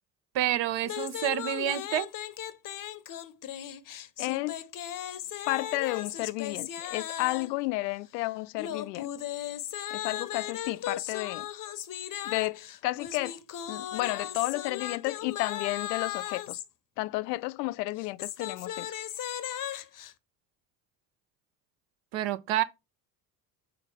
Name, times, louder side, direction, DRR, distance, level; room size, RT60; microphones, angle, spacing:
voice 1, 0.3-2.1 22.1-22.6, right 12 dB, 55° right, 0.9 m, -28 dB
sound 1, 0.8-7.6 8.6-16.7 17.9-20.1, left 11 dB, 40° left, 0.8 m, -37 dB
voice 2, 4.2-4.6 5.5-9.1 9.9-11.5 12.2-13.4 13.7-16.6 17.0-18.9, left 20 dB, 75° left, 0.5 m, -32 dB
7.0 x 4.0 x 4.8 m
hypercardioid pair, 60°, 50 cm